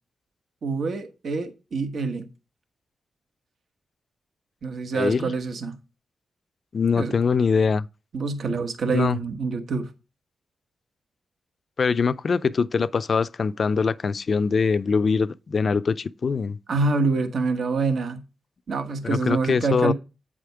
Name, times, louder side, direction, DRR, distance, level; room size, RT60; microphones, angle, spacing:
voice 1, 0.6-2.3 4.6-5.7 6.9-7.1 8.1-9.9 16.7-18.2 18.7-19.9, right 4 dB, 70° right, 1.1 m, -26 dB
voice 2, 4.9-5.3 6.7-7.9 8.9-9.2 11.8-16.6 19.0-19.9, left 5 dB, 55° left, 0.4 m, -23 dB
8.4 x 5.0 x 4.6 m
cardioid pair, 65°, 0 cm